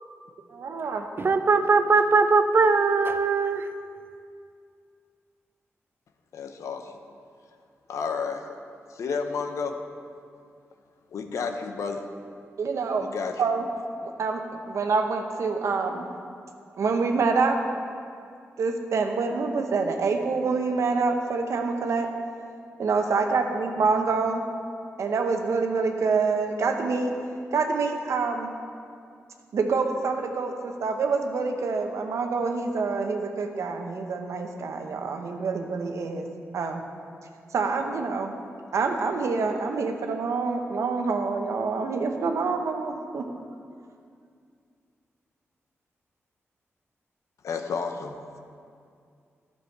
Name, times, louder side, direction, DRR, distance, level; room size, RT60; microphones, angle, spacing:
voice 1, 0.6-1.1 12.6-13.1 13.4-13.7 14.0-16.1 16.7-17.6 18.6-22.1 22.8-24.4 25.0-27.1 27.5-28.5 29.5-36.3 36.5-36.8 37.5-38.3 38.7-43.2, right 4 dB, 75° right, 4 dB, 0.9 m, -26 dB
voice 2, 1.2-3.7, right 4 dB, 45° right, 9 dB, 0.6 m, -20 dB
voice 3, 6.3-7.0 7.9-8.4 8.9-9.8 11.1-12.0 13.0-13.3 47.4-48.1, left 5 dB, 85° left, 6 dB, 0.7 m, -31 dB
11.0 x 6.9 x 4.6 m, 2.3 s
cardioid pair, 70°, 5 cm